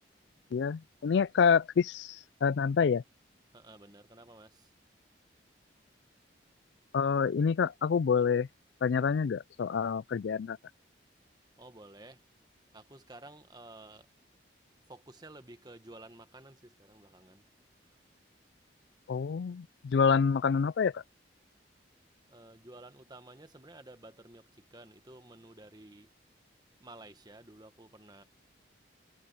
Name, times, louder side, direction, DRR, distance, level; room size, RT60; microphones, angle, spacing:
voice 1, 0.5-3.0 6.9-8.5 8.8-10.6 19.1-21.0, left 6 dB, 65° left, 0.3 m, -27 dB
voice 2, 3.5-4.7 11.6-12.2 12.7-14.1 14.9-17.4 17.9-18.0 22.3-26.1 26.8-28.2, right 2 dB, 20° right, 1.4 m, -52 dB
head